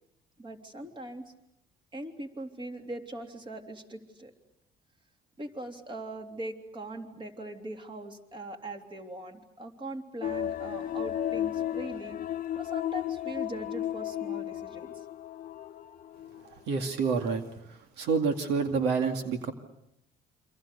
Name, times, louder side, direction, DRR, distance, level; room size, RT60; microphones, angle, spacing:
voice 1, 0.4-1.3 1.9-4.3 5.4-12.2 12.5-15.0, right 1 dB, 30° right, 4 dB, 3.3 m, -41 dB
sound 1, 10.2-16.4 16.8-16.9, left 11 dB, 50° left, 1.0 m, -34 dB
voice 2, 16.4-19.5, right 5 dB, 85° right, 6 dB, 2.3 m, -29 dB
28.5 x 25.5 x 6.9 m, 0.80 s
cardioid pair, 110°, 17 cm